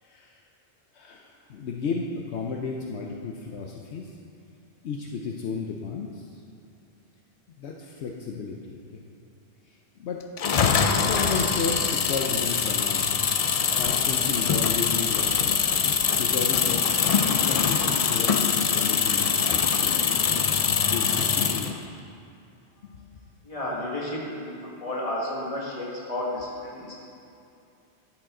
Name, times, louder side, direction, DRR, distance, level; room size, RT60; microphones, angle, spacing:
voice 1, 0.0-0.4 0.9-4.1 4.8-6.4 7.6-9.0 9.7-10.6 10.9-13.1 13.8-20.0 20.8-21.8 22.8-22.9, left 5 dB, 75° left, 0 dB, 1.0 m, -33 dB
sound 1, 10.4-21.8, left 6 dB, 55° left, 0.4 m, -23 dB
voice 2, 23.4-24.5 24.8-26.9, left 1 dB, 30° left, -5 dB, 1.8 m, -32 dB
12.0 x 7.8 x 3.8 m, 2.6 s
omnidirectional pair, 1.2 m